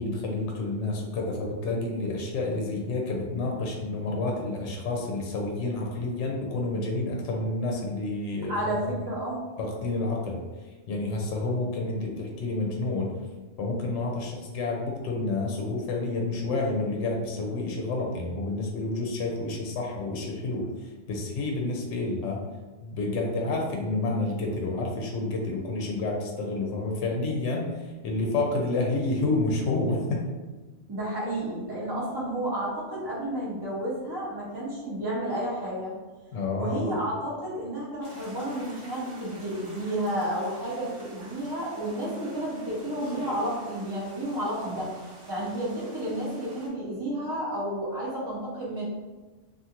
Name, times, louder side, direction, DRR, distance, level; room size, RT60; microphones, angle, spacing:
voice 1, 0.0-8.5 8.9-9.0 9.6-10.4 10.9-13.1 13.6-22.4 22.8-30.3 36.3-37.0, left 2 dB, 70° left, 0 dB, 0.8 m, -29 dB
voice 2, 8.5-9.4 30.9-35.9 36.6-44.9 45.3-48.8, right 1 dB, 35° right, -6 dB, 0.4 m, -31 dB
sound 1, 38.0-46.7, right 1 dB, 60° right, 1.2 m, -48 dB
2.5 x 2.4 x 2.8 m, 1.3 s
omnidirectional pair, 1.3 m